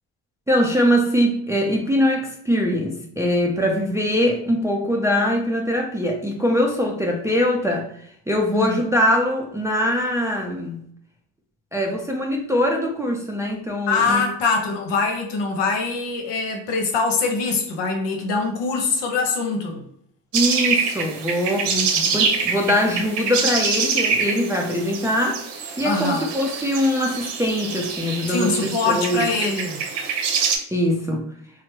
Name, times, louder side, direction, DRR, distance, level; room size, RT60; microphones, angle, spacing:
voice 1, 0.5-7.9 8.3-10.8 11.7-14.2 20.3-21.8 22.1-25.4 25.8-29.2 30.7-31.2, equal, 5° right, 0 dB, 0.4 m, -22 dB
voice 2, 8.5-8.8 13.9-19.8 21.7-22.2 25.8-26.3 28.3-29.8, left 4 dB, 65° left, 2 dB, 0.9 m, -23 dB
sound 1, 20.3-30.6, right 5 dB, 65° right, 0.7 m, -25 dB
3.1 x 2.0 x 3.1 m, 0.69 s
supercardioid pair, 65°, 45 cm